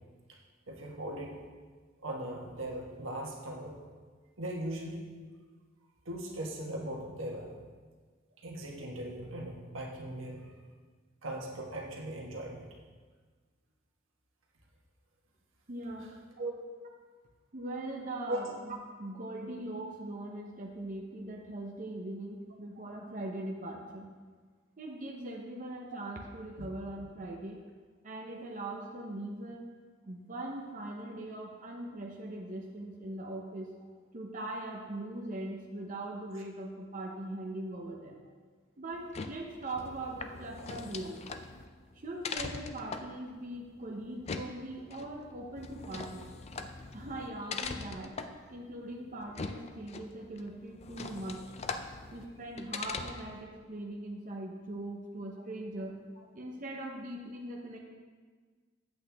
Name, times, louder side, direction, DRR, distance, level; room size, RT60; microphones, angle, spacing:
voice 1, 0.7-1.4 2.0-3.8 4.4-5.1 6.0-7.5 8.4-10.5 11.2-12.7 16.4-16.5 18.3-18.4, right 1 dB, 85° right, -1 dB, 1.4 m, -39 dB
voice 2, 15.7-16.4 17.5-24.1 24.8-27.6 28.0-29.6 30.1-33.8 34.1-38.2 38.8-41.3 41.9-46.3 46.9-48.1 48.5-51.4 52.1-56.0 56.3-57.8, right 1 dB, 40° right, -1 dB, 0.8 m, -41 dB
sound 1, 38.9-53.4, left 4 dB, 35° left, 0.4 m, -42 dB
8.4 x 8.0 x 3.5 m, 1.5 s
head